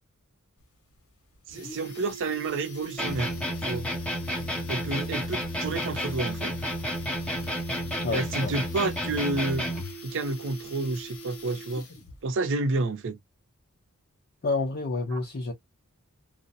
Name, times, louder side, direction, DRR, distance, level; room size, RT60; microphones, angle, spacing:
sound 1, 0.6-0.7 1.0-1.1 1.4-12.2 12.5-12.6, right 2 dB, 70° left, 1.0 m, -43 dB
voice 1, 1.5-3.3 3.6-3.9 4.7-6.5 8.1-9.6 10.0-11.9 12.2-13.2 15.1-15.2, right 3 dB, 60° right, 0.4 m, -30 dB
sound 2, 3.0-10.0, equal, 5° left, 0.8 m, -31 dB
voice 2, 8.0-8.5 14.4-15.5, left 3 dB, 45° left, 0.6 m, -29 dB
2.5 x 2.0 x 2.6 m
head